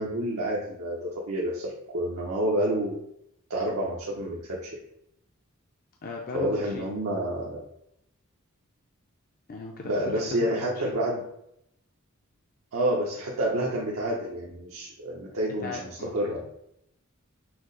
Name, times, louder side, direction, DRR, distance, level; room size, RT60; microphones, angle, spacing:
voice 1, 0.0-2.9 3.5-4.8 6.3-7.6 9.8-11.2 12.7-16.4, right 1 dB, 90° right, -4 dB, 0.8 m, -29 dB
voice 2, 6.0-6.9 9.5-10.7 15.6-16.4, left 3 dB, 45° left, 1 dB, 0.5 m, -38 dB
6.0 x 2.0 x 3.8 m, 0.77 s
head